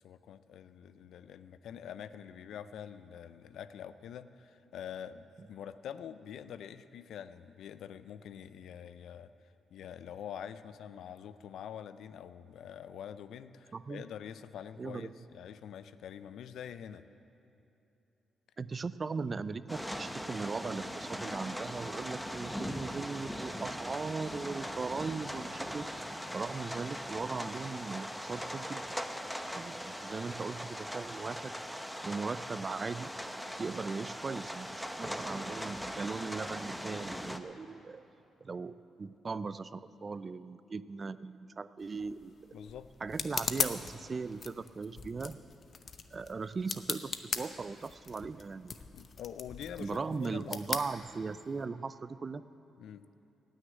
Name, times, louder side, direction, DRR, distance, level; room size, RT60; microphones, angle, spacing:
voice 1, 0.0-17.1 42.5-42.9 48.9-50.6 52.8-53.1, left 9 dB, 75° left, 13 dB, 0.5 m, -46 dB
voice 2, 13.7-14.0 14.8-15.1 18.6-25.9 26.3-28.8 29.5-31.5 32.0-33.1 33.6-38.0 38.4-42.3 43.0-45.4 46.1-48.7 49.8-52.4, right 4 dB, 40° right, 15 dB, 0.4 m, -38 dB
sound 1, 19.7-37.4, equal, ahead, 0.9 m, -40 dB
sound 2, 41.8-51.7, left 5 dB, 55° left, 0.8 m, -40 dB
17.0 x 6.5 x 8.9 m, 2.9 s
supercardioid pair, 65°, 0 cm